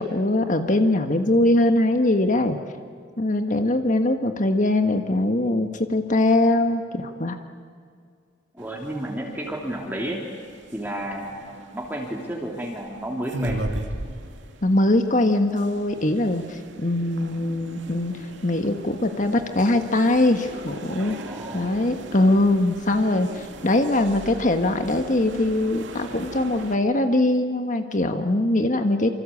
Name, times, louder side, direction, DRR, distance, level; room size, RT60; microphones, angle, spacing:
voice 1, 0.0-2.6 3.2-7.4 14.6-18.1 18.4-21.2 21.5-29.1, left 1 dB, 40° left, 7 dB, 1.5 m, -22 dB
voice 2, 8.5-10.2 10.7-13.6 21.0-21.7, right 1 dB, 10° right, -1 dB, 2.9 m, -32 dB
sound 1, 8.6-26.8, right 1 dB, 70° right, 2.5 m, -38 dB
27.5 x 25.0 x 8.6 m, 2.2 s
head